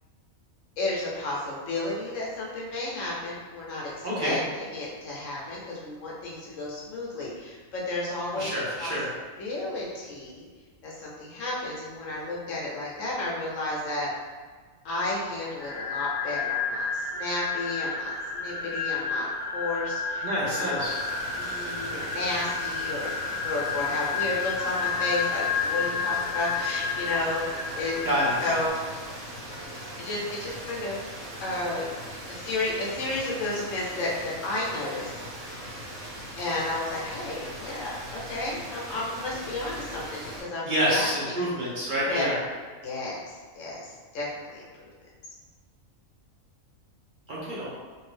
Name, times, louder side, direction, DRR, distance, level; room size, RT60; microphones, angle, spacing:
voice 1, 0.8-8.5 8.8-8.9 9.4-10.5 10.8-14.1 14.8-19.3 19.5-20.3 20.5-20.9 21.3-28.1 28.4-28.7 29.9-31.1 31.4-31.8 32.3-35.1 36.4-41.5 42.1-42.4 42.8-44.9, left 2 dB, 70° left, -5 dB, 1.1 m, -32 dB
voice 2, 4.0-4.4 8.3-9.1 20.2-21.0 28.0-28.6 40.7-42.3 47.3-47.7, equal, 50° right, -7 dB, 0.7 m, -27 dB
sound 1, 15.6-28.7, left 5 dB, 40° left, 1.2 m, -31 dB
sound 2, 20.8-40.4, right 1 dB, 65° right, 1.2 m, -40 dB
2.6 x 2.6 x 3.3 m, 1.5 s
omnidirectional pair, 1.4 m